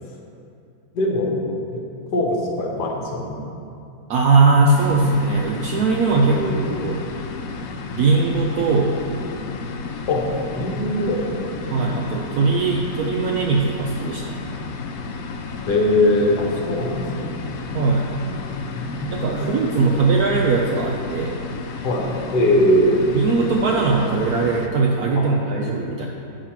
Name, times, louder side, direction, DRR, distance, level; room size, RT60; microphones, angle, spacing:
voice 1, 0.9-1.3 1.7-1.8 2.1-3.4 6.3-6.7 10.1-10.2 10.5-11.2 11.6-11.8 15.7-17.4 18.7-19.5 19.7-20.0 21.8-23.1 25.1-25.2, left 1 dB, 60° left, 0 dB, 1.5 m, -21 dB
voice 2, 4.1-6.4 6.8-7.0 7.9-9.0 11.7-14.4 17.7-18.0 19.1-21.4 23.1-26.1, right 4 dB, 70° right, 0 dB, 0.9 m, -20 dB
sound 1, 4.8-24.7, left 4 dB, 80° left, 0.7 m, -32 dB
7.7 x 5.0 x 5.8 m, 2.6 s
omnidirectional pair, 2.1 m